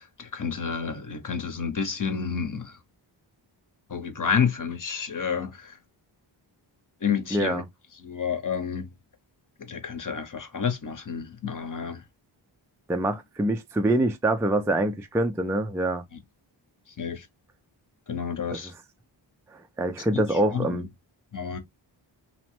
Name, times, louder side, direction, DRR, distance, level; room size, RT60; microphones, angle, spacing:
voice 1, 0.0-2.8 3.9-5.7 7.0-7.6 8.0-8.9 9.6-12.0 17.0-17.3 18.1-18.7 20.1-20.2 20.5-20.8 21.3-21.6, left 6 dB, 40° left, 0.8 m, -29 dB
voice 2, 7.3-7.6 12.9-16.0 18.5-18.6 19.8-20.9, right 1 dB, 5° right, 0.3 m, -25 dB
2.9 x 2.1 x 3.0 m
cardioid pair, 55°, 48 cm